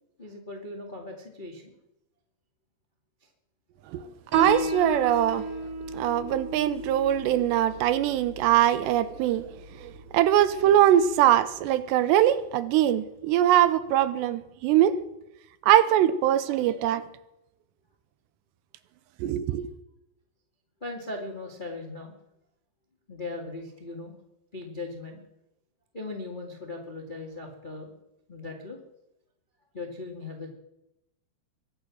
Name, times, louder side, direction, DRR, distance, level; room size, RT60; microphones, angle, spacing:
voice 1, 0.2-1.7 3.2-3.3 20.8-22.1 23.1-24.1 24.5-25.2 25.9-27.9 28.3-28.8 29.7-30.5, left 2 dB, 35° left, 0.7 m, -38 dB
Piano, 4.3-11.4, right 1 dB, 30° right, 4.7 m, -36 dB
voice 2, 4.3-5.5 5.9-9.5 9.8-15.0 15.6-17.0 19.2-19.7, right 11 dB, 80° right, 2.8 m, -22 dB
23.0 x 9.2 x 6.3 m
omnidirectional pair, 5.2 m